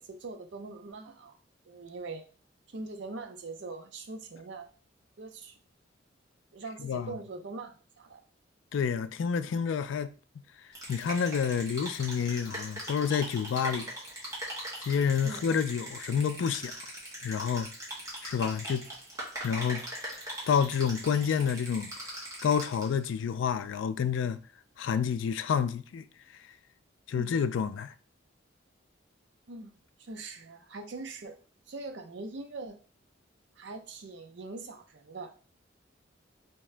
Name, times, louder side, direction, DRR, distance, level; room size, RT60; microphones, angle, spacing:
voice 1, 0.0-1.4 1.7-2.2 2.7-4.7 5.2-5.6 6.5-8.2 15.2-15.4 27.1-27.3 29.5-31.4 31.7-32.8 33.6-35.3, right 3 dB, 70° right, 0.6 m, -42 dB
voice 2, 6.8-7.1 8.7-10.1 10.9-13.9 14.8-16.8 17.2-17.7 18.2-18.9 19.4-19.8 20.5-21.9 22.4-24.4 24.8-26.1 27.1-27.9, left 7 dB, 80° left, 0.3 m, -29 dB
sound 1, 10.7-23.0, right 1 dB, 15° right, 1.3 m, -41 dB
3.5 x 2.8 x 3.2 m
head